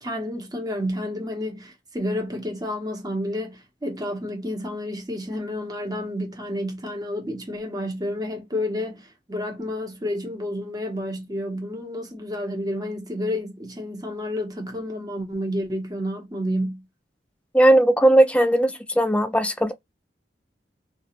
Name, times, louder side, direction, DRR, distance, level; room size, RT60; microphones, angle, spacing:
voice 1, 0.0-16.8, left 1 dB, 25° right, 0.9 m, -30 dB
voice 2, 17.5-19.7, right 1 dB, 5° left, 0.4 m, -18 dB
2.4 x 2.3 x 2.8 m
head